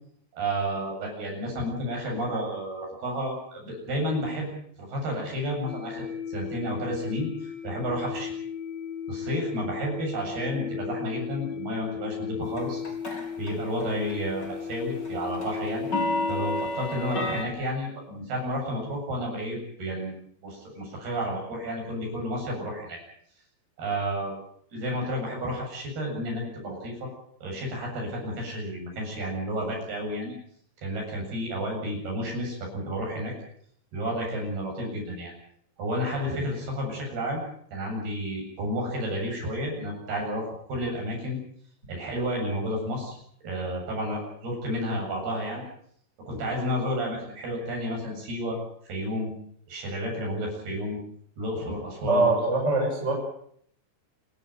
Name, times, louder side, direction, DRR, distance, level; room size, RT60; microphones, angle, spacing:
voice 1, 0.3-4.5 4.8-8.3 9.1-12.8 13.4-15.9 16.3-20.1 20.4-23.0 23.8-24.3 24.7-27.1 27.4-30.3 30.8-33.3 33.9-35.3 35.8-37.4 37.7-41.4 41.9-43.2 43.4-45.6 46.3-48.6 48.8-49.3 49.7-51.0 51.4-52.3, equal, 50° right, 0 dB, 9.5 m, -31 dB
sound 1, 5.7-16.6, left 7 dB, 65° left, 5.7 m, -35 dB
sound 2, 12.6-13.5 13.8-14.1 14.4-17.4, left 1 dB, 25° left, 3.5 m, -30 dB
voice 2, 52.1-53.1, right 2 dB, 15° right, 0 dB, 7.0 m, -23 dB
28.0 x 14.0 x 9.1 m, 0.65 s
omnidirectional pair, 5.7 m